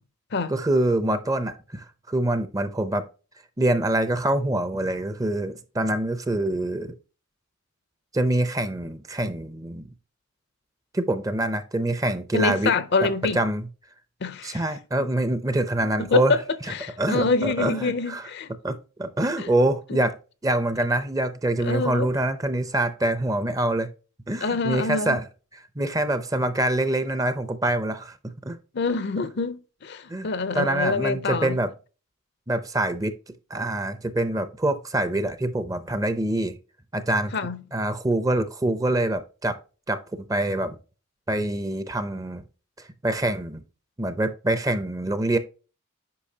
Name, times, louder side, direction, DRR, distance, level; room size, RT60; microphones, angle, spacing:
voice 1, 0.5-3.1 3.6-7.0 8.1-9.9 10.9-12.7 13.0-13.1 13.3-13.7 14.4-16.3 17.0-18.3 18.6-20.1 20.4-23.9 24.3-25.2 25.8-28.6 30.1-30.3 30.5-31.7 32.5-33.1 33.5-36.6 36.9-37.3 37.7-39.6 39.9-40.0 40.3-40.8 41.3-42.4 43.0-43.6 44.0-45.4, right 1 dB, 15° right, 0.5 m, -25 dB
voice 2, 12.3-13.4 14.2-14.6 15.0-15.1 16.0-16.4 16.7-18.5 19.4-19.5 19.9-20.0 21.6-22.1 24.4-25.2 28.7-31.6 37.3-37.6, left 4 dB, 55° left, 0.5 m, -26 dB
8.5 x 5.3 x 2.7 m
head